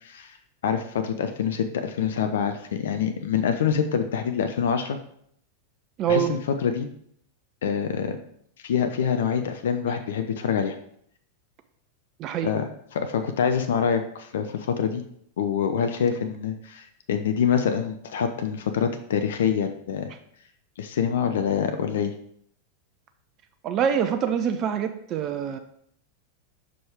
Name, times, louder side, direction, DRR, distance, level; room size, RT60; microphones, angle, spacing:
voice 1, 0.0-0.4 0.6-5.0 6.1-6.9 7.6-8.2 8.6-10.8 12.4-12.6 12.9-15.0 15.4-20.1 20.8-22.1, left 7 dB, 60° left, 8 dB, 0.5 m, -25 dB
voice 2, 6.0-6.3 12.2-12.5 23.6-25.6, right 8 dB, 35° right, 8 dB, 0.5 m, -25 dB
6.0 x 4.9 x 3.5 m, 0.67 s
figure-of-eight pair, 90°, 0 cm